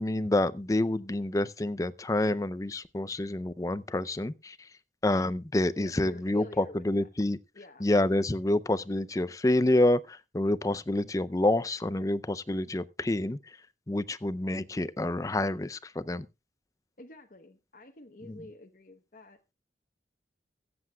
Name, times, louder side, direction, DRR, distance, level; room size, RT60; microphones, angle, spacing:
voice 1, 0.0-4.7 5.0-7.4 7.8-13.6 13.9-16.3 18.2-18.4, left 1 dB, 20° left, 0.5 m, -28 dB
voice 2, 5.7-7.1 7.5-7.9 17.0-19.4, left 2 dB, 45° left, 1.0 m, -48 dB
23.0 x 7.8 x 2.3 m
head